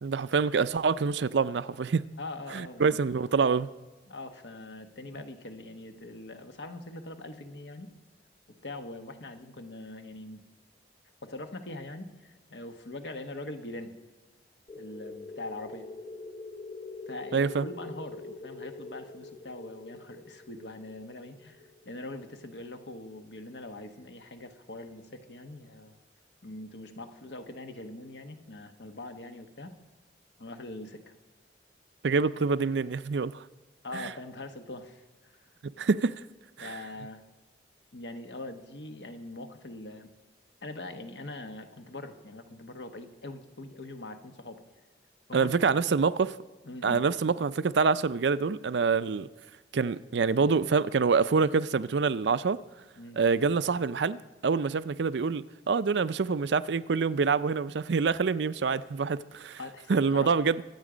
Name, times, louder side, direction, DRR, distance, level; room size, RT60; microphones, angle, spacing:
voice 1, 0.0-2.0 2.5-3.7 17.3-17.7 32.0-33.4 33.9-34.1 35.8-36.1 36.6-36.8 45.3-46.3 46.8-49.3 49.7-52.6 53.2-59.6 59.9-60.6, right 5 dB, 75° right, 0.5 m, -26 dB
voice 2, 2.2-3.0 3.3-3.5 4.1-7.9 8.6-10.4 11.2-13.9 14.8-15.9 17.1-26.0 26.4-29.7 30.4-31.1 33.8-35.5 36.6-37.2 37.9-40.1 40.6-44.6 45.3-46.0 46.6-47.0 53.0-53.2 59.6-60.3, left 2 dB, 75° left, 1.3 m, -42 dB
sound 1, 14.7-23.0, left 3 dB, 35° left, 1.8 m, -45 dB
24.5 x 8.3 x 5.0 m
head